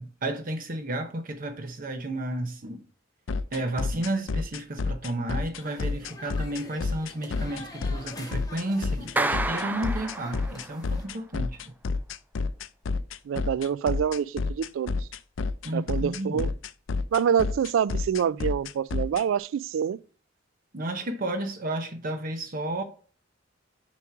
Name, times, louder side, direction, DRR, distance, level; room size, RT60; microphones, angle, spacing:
voice 1, 0.0-2.8 3.5-11.7 15.6-16.4 20.7-22.8, right 1 dB, 45° right, 0.9 m, -32 dB
sound 1, 3.3-19.2, left 4 dB, 75° left, 0.5 m, -29 dB
sound 2, 5.6-11.0, left 1 dB, 20° left, 1.0 m, -45 dB
Clapping, 9.2-10.9, right 2 dB, 10° right, 0.3 m, -30 dB
voice 2, 13.3-15.1 15.7-16.5 17.1-20.0, right 8 dB, 90° right, 0.3 m, -26 dB
7.0 x 3.1 x 5.9 m
head